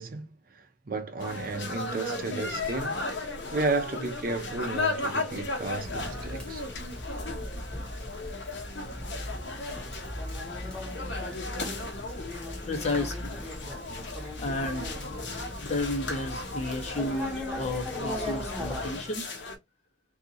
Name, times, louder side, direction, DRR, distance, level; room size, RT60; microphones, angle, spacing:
voice 1, 0.0-3.0 3.5-6.6 11.5-11.7, right 3 dB, 50° right, 0.6 m, -33 dB
sound 1, 1.2-19.6, left 2 dB, 75° left, 0.8 m, -36 dB
Conversation, 5.8-19.0, left 1 dB, 5° left, 0.8 m, -39 dB
voice 2, 12.6-13.4 14.4-14.9 15.6-19.3, left 2 dB, 35° left, 1.0 m, -32 dB
2.7 x 2.7 x 2.5 m
head